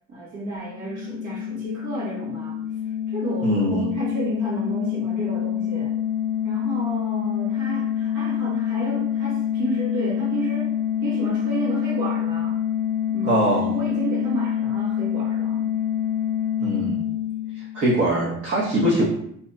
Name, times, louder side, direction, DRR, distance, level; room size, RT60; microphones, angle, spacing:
voice 1, 0.1-2.6 3.1-5.9 6.4-10.7 11.0-12.6 13.1-15.8, right 2 dB, 80° right, -6 dB, 1.2 m, -32 dB
sound 1, 0.6-18.1, left 9 dB, 25° right, 0.7 m, -26 dB
voice 2, 3.4-3.9 13.2-13.7 16.6-17.1 17.7-19.1, right 1 dB, 50° right, -8 dB, 0.9 m, -22 dB
2.8 x 2.7 x 2.2 m, 0.72 s
cardioid pair, 90°, 30 cm